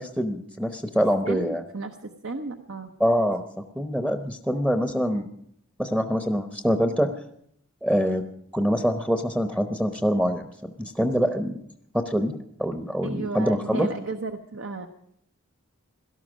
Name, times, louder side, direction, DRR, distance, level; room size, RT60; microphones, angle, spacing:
voice 1, 0.0-1.6 3.0-5.3 5.8-7.1 7.8-8.2 8.5-11.6 11.9-13.9, equal, 5° right, 7 dB, 0.8 m, -25 dB
voice 2, 1.2-2.9 13.0-14.9, right 3 dB, 70° right, 5 dB, 1.0 m, -34 dB
17.5 x 12.5 x 6.3 m, 0.71 s
head